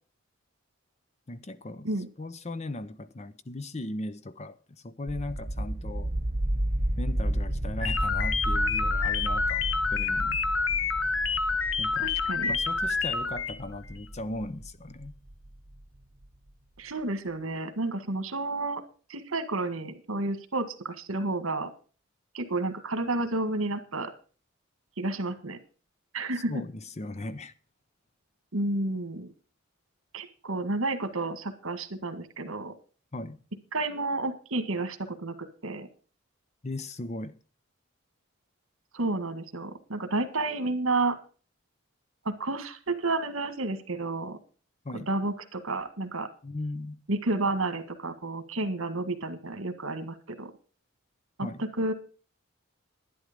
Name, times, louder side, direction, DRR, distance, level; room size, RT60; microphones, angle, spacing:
voice 1, 1.3-1.9 2.2-6.1 7.0-10.4 11.8-12.1 12.5-15.1 26.3-27.5 33.1-33.4 36.6-37.4 44.8-45.1 46.4-47.0 51.4-51.6, left 2 dB, 35° left, 0.7 m, -38 dB
sound 1, 5.1-15.8, right 1 dB, 35° right, 1.2 m, -32 dB
sound 2, 7.8-13.6, left 4 dB, 70° left, 1.2 m, -28 dB
voice 2, 12.0-12.5 16.8-18.8 19.1-21.7 22.3-24.1 25.0-25.6 26.1-26.6 28.5-29.3 30.1-32.7 33.7-35.9 38.9-41.2 42.3-44.4 44.9-46.3 47.1-50.5 51.4-51.9, right 2 dB, 80° right, 1.8 m, -31 dB
11.5 x 10.5 x 5.2 m
head